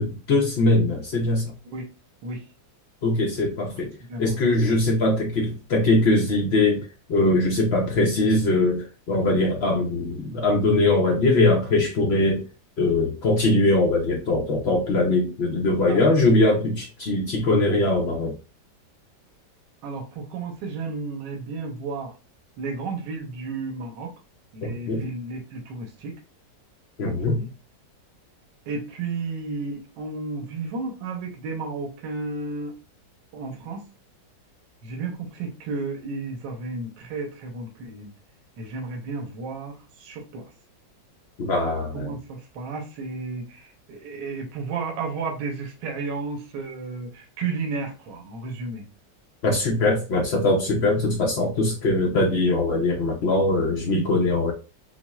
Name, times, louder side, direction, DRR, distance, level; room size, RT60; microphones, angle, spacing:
voice 1, 0.0-1.5 3.0-3.9 4.2-12.4 12.8-18.3 24.6-25.0 27.0-27.4 41.4-42.1 49.4-54.5, left 2 dB, 80° left, 0 dB, 0.5 m, -21 dB
voice 2, 19.8-22.1 22.6-24.1 24.5-26.1 27.0-27.5 28.7-32.7 33.3-33.8 34.8-38.1 38.6-40.4 41.9-48.8, right 3 dB, 75° right, 2 dB, 1.4 m, -33 dB
6.1 x 2.0 x 2.3 m, 0.31 s
omnidirectional pair, 2.0 m